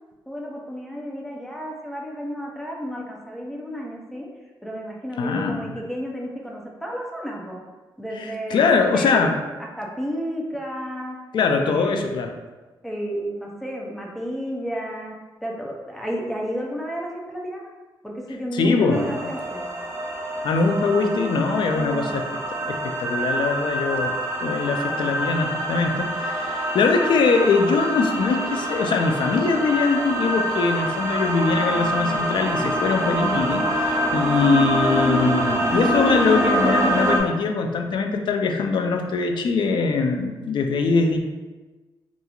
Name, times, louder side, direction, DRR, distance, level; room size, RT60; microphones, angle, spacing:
voice 1, 0.3-4.3 4.6-7.6 8.0-9.3 9.6-11.2 11.5-12.1 12.8-15.1 15.4-17.7 18.0-19.7 21.8-22.2, equal, ahead, -2 dB, 0.5 m, -32 dB
voice 2, 5.2-5.7 8.2-9.3 11.3-12.3 18.5-19.1 20.4-22.2 22.6-24.2 24.4-41.2, left 4 dB, 65° left, 4 dB, 0.3 m, -22 dB
sound 1, 18.9-37.2, right 1 dB, 35° right, 0.7 m, -25 dB
2.8 x 2.4 x 2.3 m, 1.2 s
cardioid pair, 85°, 9 cm